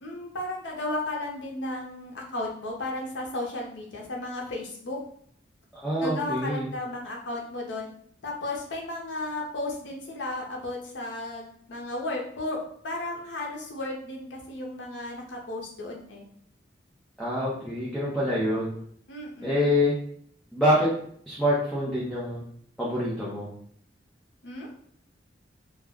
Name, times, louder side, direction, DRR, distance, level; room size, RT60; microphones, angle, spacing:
voice 1, 0.0-5.0 6.0-7.9 8.2-12.6 12.8-16.3 19.1-19.7 24.4-24.7, left 2 dB, 75° left, -1 dB, 0.7 m, -34 dB
voice 2, 5.8-6.6 17.2-18.7 19.4-19.9 20.5-20.9 21.3-22.4 22.8-23.5, left 1 dB, ahead, -8 dB, 0.6 m, -25 dB
2.3 x 2.1 x 3.5 m, 0.62 s
head